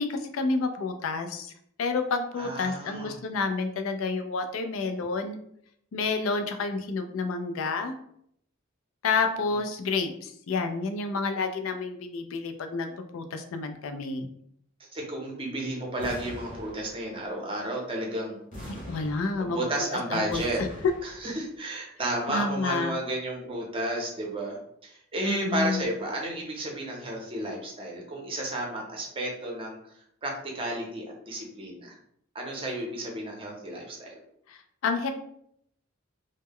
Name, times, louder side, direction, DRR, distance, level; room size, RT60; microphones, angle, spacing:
voice 1, 0.0-1.5 1.8-5.4 5.9-8.0 9.0-14.3 18.7-19.6 20.1-20.7 22.3-22.9 25.2-25.8 34.5-35.1, left 4 dB, 70° left, 7 dB, 0.4 m, -29 dB
voice 2, 2.4-3.1 14.8-18.7 19.4-20.6 21.0-24.6 24.8-29.8 30.2-32.0 32.3-34.1, right 1 dB, 25° right, -1 dB, 0.6 m, -32 dB
sound 1, 16.0-17.3 18.5-19.8 20.3-21.4, equal, 40° left, 0.9 m, -42 dB
2.1 x 2.1 x 3.5 m, 0.70 s
head